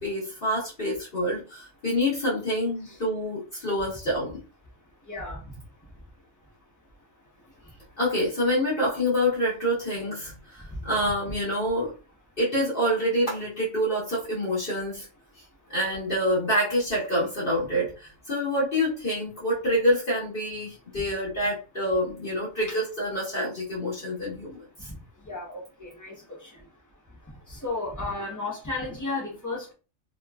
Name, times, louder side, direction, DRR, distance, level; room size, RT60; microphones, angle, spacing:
voice 1, 0.0-4.4 8.0-11.9 12.4-15.1 15.7-24.9, equal, 45° left, -7 dB, 1.2 m, -27 dB
voice 2, 5.1-5.4 25.2-26.2 26.4-26.5 27.5-29.7, left 3 dB, 15° left, -3 dB, 1.0 m, -33 dB
3.1 x 3.0 x 2.3 m, 0.33 s
omnidirectional pair, 1.3 m